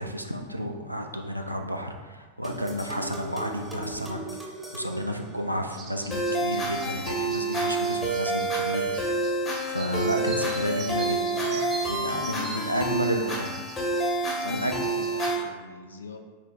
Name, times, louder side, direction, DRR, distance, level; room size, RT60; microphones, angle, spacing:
voice 1, 0.0-4.2 4.7-9.2 9.7-11.6 11.9-13.6 14.5-14.7, equal, 90° right, 3 dB, 0.3 m, -31 dB
sound 1, 2.4-5.9, right 2 dB, ahead, 0.8 m, -40 dB
sound 2, 5.7-15.3, right 4 dB, 30° right, 0.5 m, -42 dB
sound 3, 6.1-15.4, right 2 dB, 25° left, 1.0 m, -28 dB
voice 2, 12.0-13.4 14.4-16.2, left 4 dB, 70° left, 5 dB, 0.4 m, -40 dB
5.5 x 2.0 x 3.5 m, 1.3 s
figure-of-eight pair, 90°, 0 cm